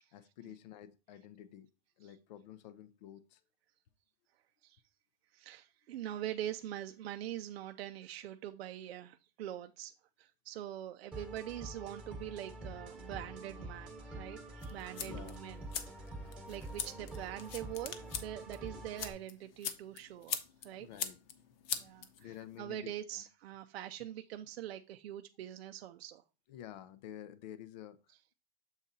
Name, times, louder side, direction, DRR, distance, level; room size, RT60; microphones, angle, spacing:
voice 1, 0.1-1.7 2.0-3.4 15.0-15.4 20.8-21.2 22.2-23.2 26.5-28.3, left 11 dB, 45° left, 0.5 m, -50 dB
voice 2, 5.3-15.7 16.0-16.1 16.5-20.9 21.8-22.3 22.6-26.2, right 12 dB, 75° right, 0.6 m, -44 dB
sound 1, 11.1-19.1, right 1 dB, 5° right, 1.2 m, -47 dB
sound 2, 14.6-22.6, left 8 dB, 60° left, 1.0 m, -43 dB
7.2 x 3.9 x 4.0 m
supercardioid pair, 165°, 32 cm